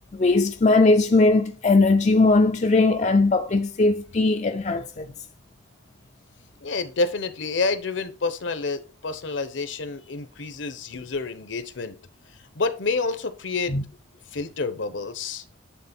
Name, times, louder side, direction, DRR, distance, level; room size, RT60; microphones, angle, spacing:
voice 1, 0.1-5.1 13.7-13.8, left 3 dB, 35° left, 0.4 m, -19 dB
voice 2, 6.6-12.0 12.5-13.7 14.3-15.4, left 3 dB, 70° left, 0.9 m, -28 dB
9.4 x 3.8 x 4.3 m
head